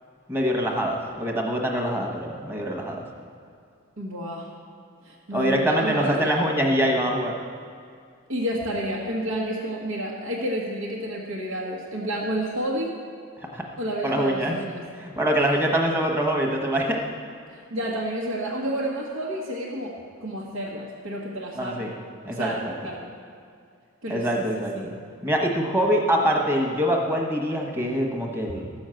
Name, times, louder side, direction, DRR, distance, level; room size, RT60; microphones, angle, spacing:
voice 1, 0.3-3.0 5.3-7.3 13.5-13.6 14.0-14.5 15.0-17.0 21.6-21.9 22.2-22.7 24.1-24.9 25.2-28.7, equal, 10° right, 0 dB, 1.1 m, -24 dB
voice 2, 4.0-4.5 5.0-6.3 8.3-13.0 13.8-14.8 17.5-21.9 22.3-23.1 24.0-24.9 26.2-26.3, equal, 85° right, -6 dB, 1.5 m, -30 dB
13.5 x 6.4 x 7.7 m, 2.3 s
head